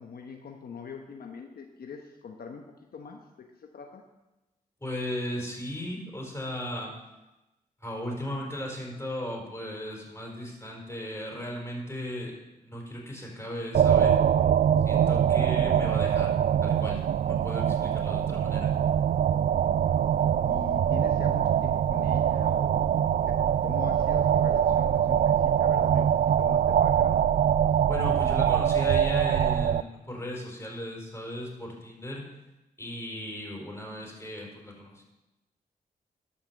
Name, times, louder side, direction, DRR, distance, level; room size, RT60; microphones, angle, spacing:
voice 1, 0.0-2.6 2.9-4.0 20.5-27.3, left 5 dB, 70° left, 2 dB, 1.1 m, -42 dB
voice 2, 4.8-6.9 7.8-12.3 12.6-14.2 14.9-16.4 16.6-18.7 27.9-32.2 32.8-35.0, left 1 dB, 15° left, -1 dB, 4.7 m, -36 dB
sound 1, 13.7-29.8, right 9 dB, 60° right, 0.4 m, -23 dB
12.0 x 5.8 x 7.1 m, 1.0 s
cardioid pair, 55°, 17 cm